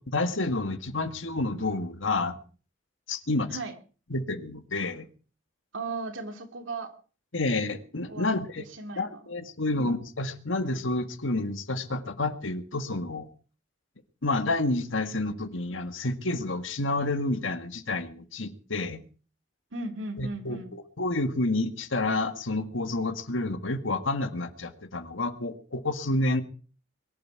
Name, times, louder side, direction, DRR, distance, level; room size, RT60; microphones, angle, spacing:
voice 1, 0.1-2.4 3.1-3.5 4.1-5.1 7.3-8.7 9.0-13.3 14.2-19.0 20.2-26.4, left 2 dB, 75° left, 9 dB, 1.8 m, -29 dB
voice 2, 5.7-6.9 8.1-8.3 8.8-9.1 9.7-10.0 19.7-20.7, right 3 dB, 70° right, 5 dB, 2.8 m, -36 dB
22.5 x 11.5 x 4.7 m, 0.39 s
head